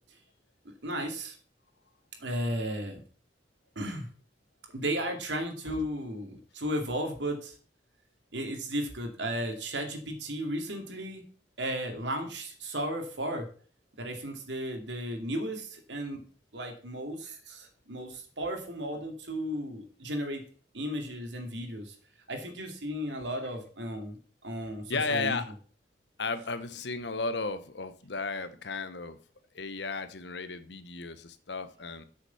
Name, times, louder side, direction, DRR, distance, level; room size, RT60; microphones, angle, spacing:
voice 1, 0.6-1.4 2.2-3.0 3.8-4.1 4.7-7.5 8.3-11.2 11.6-13.5 14.0-16.2 16.5-20.4 20.7-21.9 22.3-24.2 24.4-25.4, equal, 80° right, 2.6 m, -34 dB
voice 2, 24.9-25.5 26.2-29.2 29.5-32.0, left 3 dB, 70° left, 1.0 m, -34 dB
8.3 x 6.6 x 7.0 m
head